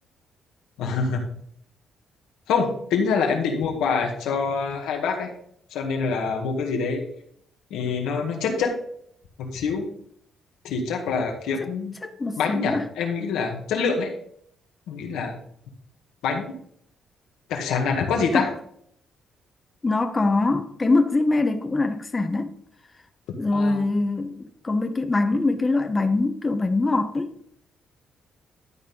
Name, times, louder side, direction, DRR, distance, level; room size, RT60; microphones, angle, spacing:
voice 1, 0.8-1.3 2.5-5.3 5.7-7.1 7.7-8.8 9.4-9.9 10.6-11.9 12.4-14.1 14.9-15.4 16.2-16.5 17.5-18.5 23.5-23.8, left 5 dB, 90° left, 1.8 m, -25 dB
voice 2, 12.0-12.8 18.3-18.5 19.8-22.5 23.4-27.3, left 3 dB, 25° left, 0.9 m, -23 dB
12.0 x 4.2 x 5.3 m
cardioid pair, 90°, 0 cm